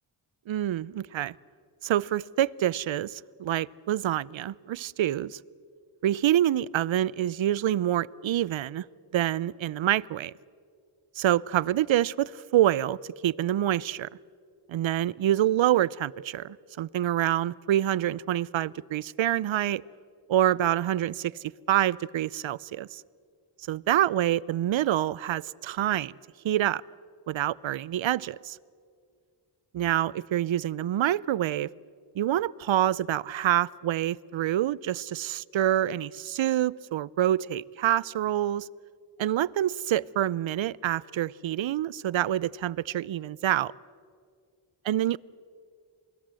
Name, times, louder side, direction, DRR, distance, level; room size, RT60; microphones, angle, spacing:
voice 1, 0.5-1.3 1.8-5.4 6.0-8.8 9.1-10.3 11.2-13.0 13.2-14.1 14.7-19.8 20.3-21.3 21.7-23.0 23.7-26.1 26.4-26.8 27.3-28.6 29.7-31.7 32.2-38.7 39.2-43.7 44.9-45.2, right 12 dB, 70° right, 22 dB, 0.6 m, -26 dB
28.0 x 20.0 x 7.6 m, 2.2 s
cardioid pair, 60°, 48 cm